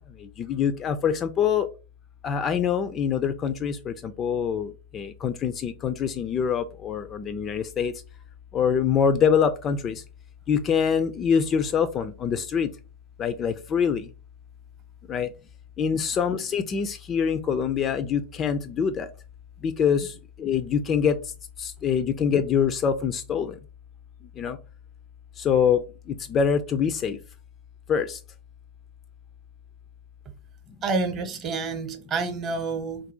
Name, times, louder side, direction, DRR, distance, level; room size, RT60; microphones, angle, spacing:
voice 1, 0.4-1.7 2.2-7.9 8.5-10.0 10.5-12.7 13.2-14.1 15.1-15.3 15.8-19.1 19.6-20.1 20.4-21.2 21.6-23.5 24.4-24.6 25.4-25.8 26.1-27.2 27.9-28.2, left 7 dB, 25° left, 12 dB, 0.3 m, -24 dB
voice 2, 30.8-33.0, right 4 dB, 30° right, 7 dB, 0.8 m, -28 dB
3.9 x 2.5 x 2.7 m, 0.32 s
figure-of-eight pair, 90°, 0 cm